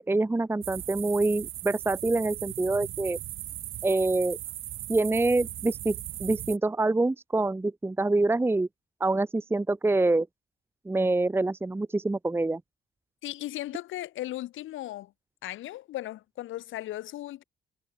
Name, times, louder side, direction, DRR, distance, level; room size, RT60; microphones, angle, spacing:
voice 1, 0.0-3.2 3.8-4.4 4.9-8.7 9.0-10.3 10.9-12.6, right 2 dB, 10° right, 0.8 m, -26 dB
sound 1, 0.6-6.6, right 14 dB, 80° right, 1.7 m, -38 dB
voice 2, 13.2-15.1 15.4-17.4, left 14 dB, 85° left, 3.6 m, -36 dB
cardioid pair, 90°, 20 cm